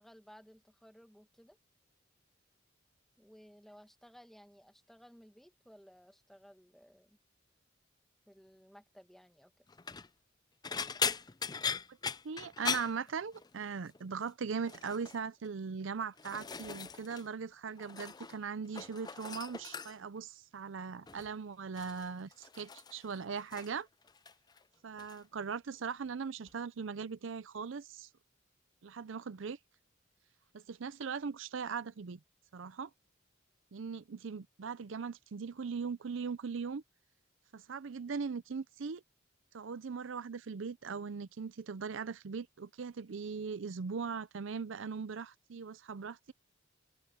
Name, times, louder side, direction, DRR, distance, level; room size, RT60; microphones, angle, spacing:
voice 1, 0.0-1.6 3.2-7.2 8.3-9.7, equal, ahead, 1.6 m, -58 dB
sound 1, 9.7-10.1 10.6-13.7 13.9-14.3 14.6-15.2 15.8-17.3 17.5-18.4 18.6-20.2 21.1-21.3 21.8-23.8 24.1-24.6 25.0-25.2 26.5-26.6, left 6 dB, 20° left, 0.5 m, -39 dB
voice 2, 12.2-23.9 24.8-28.1 28.8-29.6 30.5-32.2 32.5-32.9 33.7-36.8 37.5-39.0 39.5-46.3, right 5 dB, 70° right, 0.5 m, -40 dB
open air
head